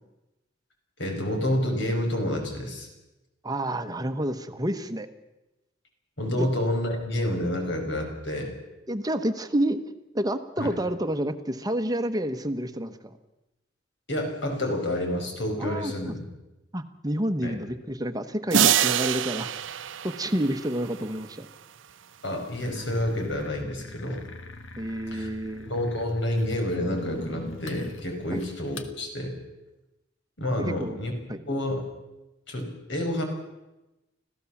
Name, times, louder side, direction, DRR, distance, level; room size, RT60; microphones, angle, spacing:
voice 1, 1.0-2.9 6.2-8.5 10.6-10.7 14.1-16.3 17.4-17.6 22.2-24.2 25.1-25.3 25.6-29.3 30.4-31.1 31.5-31.8 32.5-33.2, left 1 dB, 65° left, 3 dB, 5.4 m, -29 dB
voice 2, 3.4-5.1 6.4-6.5 8.9-9.8 10.1-13.1 15.6-16.2 16.7-19.5 20.0-21.5 24.8-25.7 28.3-28.4 30.6-31.0 31.3-31.4, right 1 dB, 20° right, 9 dB, 1.1 m, -29 dB
sound 1, 18.5-21.0, right 9 dB, 85° right, 0.7 m, -25 dB
sound 2, 22.6-28.9, left 2 dB, 85° left, 1.6 m, -41 dB
26.0 x 16.0 x 7.2 m, 1.0 s
head